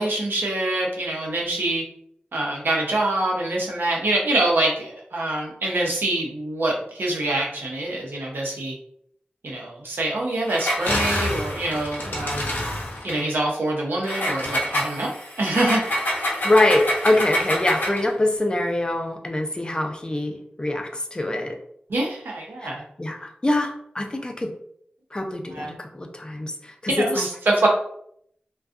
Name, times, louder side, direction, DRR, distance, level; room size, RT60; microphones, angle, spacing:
voice 1, 0.0-1.8 2.3-8.7 9.4-12.5 13.0-15.1 15.4-15.8 21.9-22.8 25.5-25.7 26.9-27.7, right 2 dB, 80° right, -1 dB, 0.6 m, -25 dB
Engine, 10.4-13.2 14.0-18.1, left 1 dB, 70° left, 0.6 m, -26 dB
voice 2, 16.4-21.6 22.6-22.7 23.0-24.5 25.1-26.5 26.8-27.3, left 1 dB, 25° left, 3 dB, 0.4 m, -24 dB
2.5 x 2.2 x 2.4 m, 0.69 s
wide cardioid pair, 50°, 3 cm